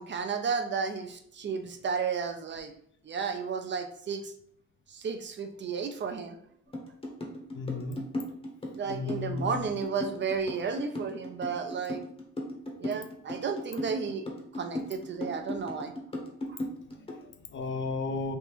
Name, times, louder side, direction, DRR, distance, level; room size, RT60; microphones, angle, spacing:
voice 1, 0.0-2.7 3.0-4.3 4.9-6.4 8.7-12.0 12.8-14.2 14.5-15.9 16.5-16.6, right 5 dB, 40° right, 6 dB, 0.4 m, -33 dB
sound 1, 6.7-17.2, left 1 dB, 20° left, 0.8 m, -37 dB
voice 2, 7.5-8.0 8.9-9.7 16.9-18.4, left 4 dB, 40° left, 7 dB, 0.4 m, -35 dB
3.4 x 2.5 x 2.9 m, 0.65 s
cardioid pair, 90°, 30 cm